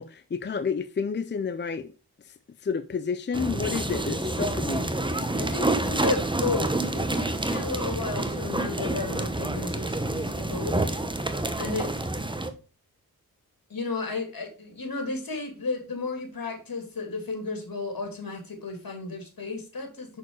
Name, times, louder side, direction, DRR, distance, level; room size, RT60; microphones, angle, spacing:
voice 1, 0.0-1.9 2.2-2.3 2.6-4.9, left 5 dB, 30° left, 0.5 m, -30 dB
sound 1, 3.3-12.5, right 2 dB, 10° right, 1.0 m, -28 dB
voice 2, 5.4-10.8 11.6-11.9 13.7-20.2, left 3 dB, 60° left, 2.7 m, -33 dB
6.2 x 4.6 x 4.7 m
cardioid pair, 45°, 39 cm